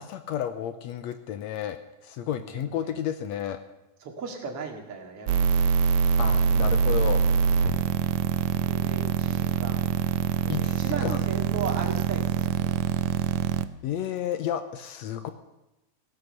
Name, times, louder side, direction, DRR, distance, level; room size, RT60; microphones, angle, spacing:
voice 1, 0.0-3.6 6.2-7.3 10.5-11.2 13.8-15.3, left 10 dB, 75° left, 10 dB, 1.7 m, -32 dB
voice 2, 2.6-3.0 4.0-5.7 7.6-7.8 8.6-9.9 10.4-12.8, right 5 dB, 50° right, 1 dB, 2.9 m, -37 dB
sound 1, 5.3-13.6, right 7 dB, 75° right, 1.7 m, -24 dB
15.5 x 11.5 x 6.6 m, 0.98 s
omnidirectional pair, 3.6 m